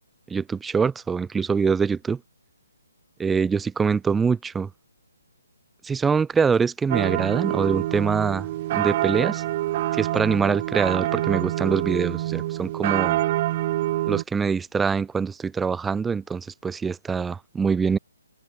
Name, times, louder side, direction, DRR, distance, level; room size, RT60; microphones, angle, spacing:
voice 1, 0.3-2.2 3.2-4.7 5.8-8.5 8.7-9.4 9.9-13.2 14.1-18.0, right 5 dB, 5° right, 0.5 m, -24 dB
sound 1, 6.9-14.2, right 15 dB, 30° right, 1.5 m, -26 dB
figure-of-eight pair, 140°, 0 cm